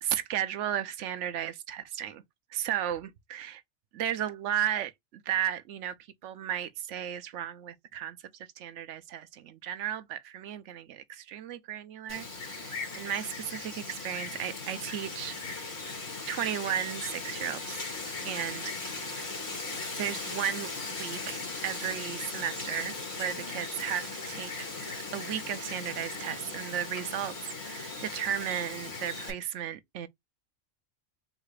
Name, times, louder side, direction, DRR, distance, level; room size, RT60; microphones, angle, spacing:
voice 1, 0.0-2.2 2.5-3.6 3.9-5.9 6.2-8.2 8.6-15.6 16.3-17.8 18.2-19.3 20.0-20.7 21.0-27.3 27.6-30.1, right 10 dB, 70° right, 0.9 m, -34 dB
Wind, 12.1-29.3, left 3 dB, 70° left, 2.2 m, -38 dB
4.0 x 2.4 x 4.7 m
omnidirectional pair, 1.4 m